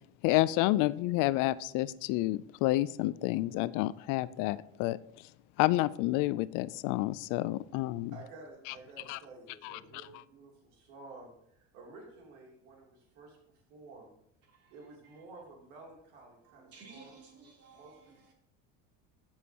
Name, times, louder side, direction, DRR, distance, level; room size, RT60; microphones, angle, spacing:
voice 1, 0.2-5.0 5.6-8.1 9.1-9.2 9.6-9.8, left 17 dB, 65° left, 0.5 m, -29 dB
voice 2, 8.1-14.1 14.7-17.2 17.7-18.3, right 3 dB, 85° right, 3.2 m, -52 dB
voice 3, 16.5-18.3, right 4 dB, 45° right, 3.5 m, -55 dB
14.5 x 7.3 x 2.9 m
supercardioid pair, 110°, 34 cm